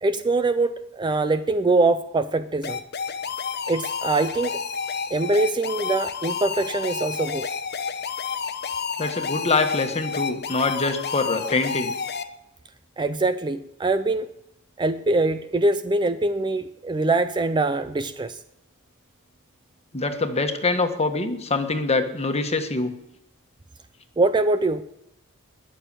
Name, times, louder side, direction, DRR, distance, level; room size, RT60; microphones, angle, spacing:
voice 1, 0.0-2.8 3.7-4.6 5.1-7.5 13.0-14.3 14.8-18.4 24.2-24.8, right 2 dB, 20° right, 11 dB, 0.5 m, -23 dB
sound 1, 2.6-12.2, left 6 dB, 50° left, 1.0 m, -30 dB
voice 2, 9.0-11.9 19.9-22.9, left 3 dB, 30° left, 6 dB, 1.4 m, -24 dB
20.5 x 6.9 x 8.9 m, 0.85 s
head